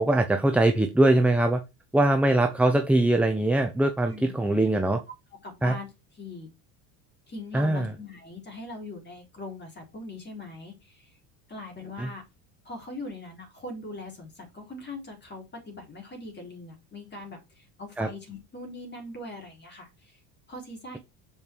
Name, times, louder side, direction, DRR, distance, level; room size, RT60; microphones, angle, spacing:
voice 1, 0.0-1.6 1.9-5.0 5.6-5.8 7.5-7.9 12.0-12.1 18.0-18.1, right 1 dB, 5° right, 5 dB, 0.8 m, -22 dB
voice 2, 5.4-5.9 6.2-6.5 7.3-11.1 11.5-12.2 12.6-20.2 20.5-21.0, left 2 dB, 20° left, 2 dB, 4.3 m, -41 dB
7.1 x 5.3 x 4.7 m, 0.24 s
supercardioid pair, 105°, 46 cm